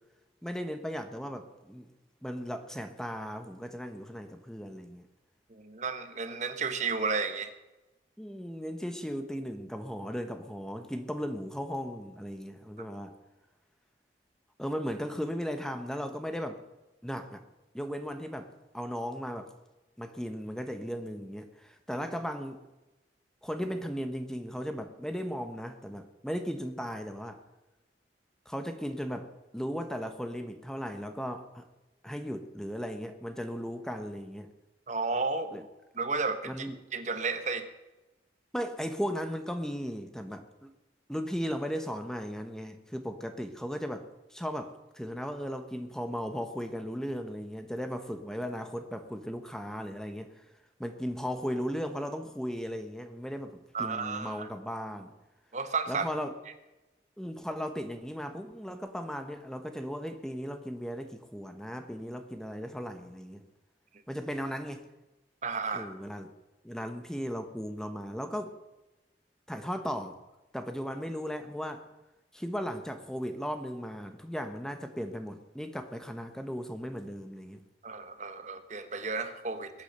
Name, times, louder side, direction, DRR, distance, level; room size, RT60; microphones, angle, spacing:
voice 1, 0.4-1.9 2.2-5.0 8.2-13.1 14.6-16.6 17.0-17.4 17.7-19.5 20.0-22.6 23.4-27.4 28.4-31.6 32.0-34.5 35.5-35.6 36.5-36.7 38.5-40.7 41.1-50.4 50.8-55.1 55.9-56.3 57.2-63.4 64.1-64.9 65.7-66.3 66.6-68.6 69.5-70.2 70.5-71.8 72.3-77.6, equal, 5° left, 7 dB, 1.2 m, -36 dB
voice 2, 5.5-7.5 34.9-35.7 36.0-36.7 36.9-37.7 53.7-54.5 55.5-56.1 65.4-65.9 77.8-79.7, right 4 dB, 45° right, 9 dB, 1.2 m, -32 dB
22.0 x 8.8 x 6.7 m, 1.0 s
head